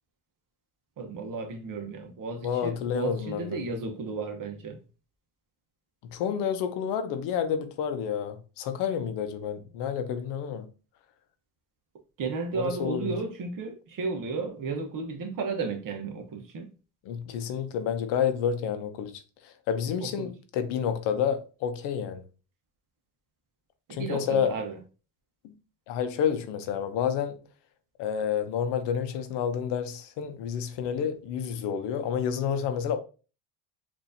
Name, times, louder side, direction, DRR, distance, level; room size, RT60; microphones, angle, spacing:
voice 1, 1.0-4.8 12.2-16.7 20.0-20.3 23.9-24.8, right 4 dB, 45° right, 1.0 m, -33 dB
voice 2, 2.4-3.6 6.1-10.7 12.5-13.2 17.0-22.2 23.9-24.6 25.4-25.5 25.9-27.4 28.0-33.0, left 8 dB, 70° left, 0.7 m, -29 dB
4.3 x 2.7 x 2.6 m
supercardioid pair, 105°, 44 cm